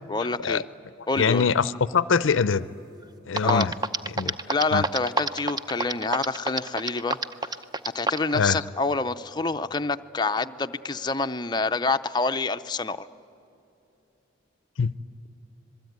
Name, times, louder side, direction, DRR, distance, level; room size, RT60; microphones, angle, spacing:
voice 1, 0.1-0.6 1.1-1.5 3.4-3.7 4.2-7.2 7.9-13.1, left 3 dB, 20° left, 8 dB, 0.5 m, -27 dB
voice 2, 1.2-2.7 3.3-3.7 4.1-4.3 4.7-4.8 8.3-8.6 14.8-14.9, left 5 dB, 65° left, 17 dB, 0.5 m, -23 dB
sound 1, 3.0-3.1 3.4-8.3, right 3 dB, 20° right, 0.6 m, -26 dB
26.5 x 21.5 x 9.4 m, 2.7 s
head